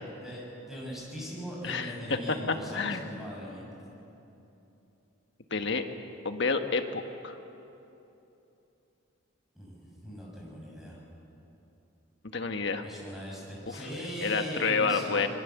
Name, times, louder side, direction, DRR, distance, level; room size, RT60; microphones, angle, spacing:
voice 1, 0.0-3.6 9.5-11.0 12.8-15.3, equal, ahead, -4 dB, 6.3 m, -40 dB
voice 2, 1.6-1.9 2.3-3.0 5.5-5.8 6.2-7.4 12.3-12.8 14.2-15.3, left 4 dB, 55° left, 6 dB, 1.3 m, -29 dB
25.5 x 21.5 x 7.2 m, 2.9 s
head